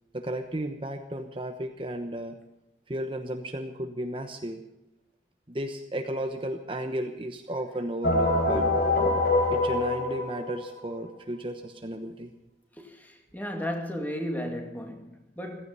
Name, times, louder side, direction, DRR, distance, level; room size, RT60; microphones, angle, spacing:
voice 1, 0.1-2.4 2.9-4.6 5.5-8.7 9.5-12.3, right 1 dB, 30° right, 1.1 m, -34 dB
sound 1, 8.0-10.9, left 2 dB, 55° left, 3.8 m, -25 dB
voice 2, 12.7-15.7, equal, 10° left, 2.3 m, -34 dB
16.0 x 15.0 x 5.5 m
head